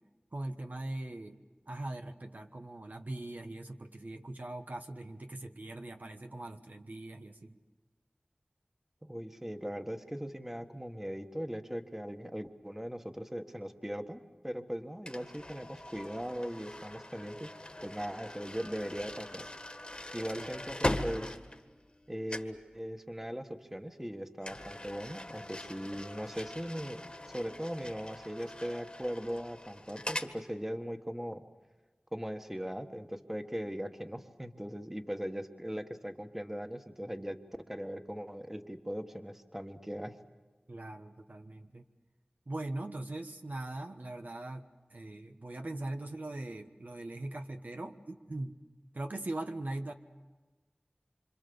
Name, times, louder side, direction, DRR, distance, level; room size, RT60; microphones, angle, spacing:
voice 1, 0.3-1.4 1.7-7.6 20.4-20.5 40.7-41.8 42.5-48.6 48.9-49.9, right 2 dB, 65° right, 4 dB, 1.2 m, -41 dB
voice 2, 9.0-17.5 17.8-19.4 20.1-21.4 22.1-31.4 32.1-37.4 37.7-40.2, equal, 10° right, 6 dB, 1.5 m, -39 dB
sound 1, 15.1-22.0 22.3-22.6 24.4-30.3, left 1 dB, 35° left, 1.8 m, -41 dB
26.0 x 26.0 x 7.0 m, 1.2 s
wide cardioid pair, 40°, 3 cm